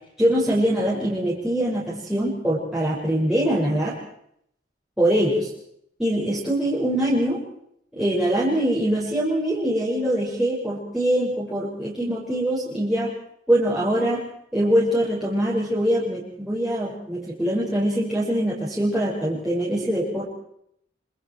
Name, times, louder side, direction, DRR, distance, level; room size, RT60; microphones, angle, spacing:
voice 1, 0.2-3.9 5.0-5.5 6.0-7.4 8.0-13.1 13.5-14.2 14.5-20.3, right 1 dB, 5° right, -8 dB, 6.1 m, -23 dB
27.0 x 26.0 x 4.8 m, 0.73 s
head